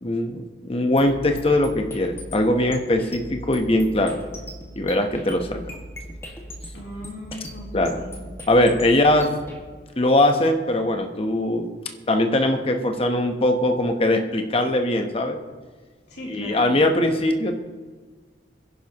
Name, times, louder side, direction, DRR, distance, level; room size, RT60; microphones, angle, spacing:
voice 1, 0.0-4.2 4.7-5.6 7.7-8.0 8.5-9.3 10.0-11.7 12.1-15.4 16.3-17.5, left 1 dB, 30° left, 5 dB, 1.0 m, -21 dB
sound 1, 1.0-9.6, equal, 15° left, 1.8 m, -39 dB
voice 2, 6.7-8.3 16.1-16.8, equal, 65° left, -3 dB, 3.5 m, -38 dB
22.5 x 10.5 x 3.0 m, 1.4 s
head